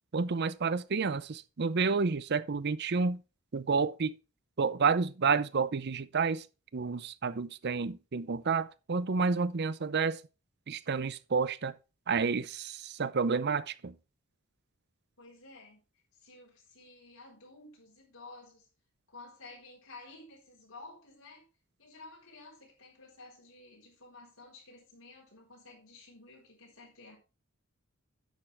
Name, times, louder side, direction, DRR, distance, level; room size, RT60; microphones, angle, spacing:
voice 1, 0.1-3.2 3.5-4.2 4.6-6.4 6.7-10.2 10.7-11.7 12.1-13.9, right 5 dB, 50° right, 0.6 m, -30 dB
voice 2, 15.2-15.8 16.2-18.7 19.1-21.4 21.8-27.2, left 3 dB, 80° left, 4.1 m, -52 dB
10.5 x 7.8 x 3.5 m
head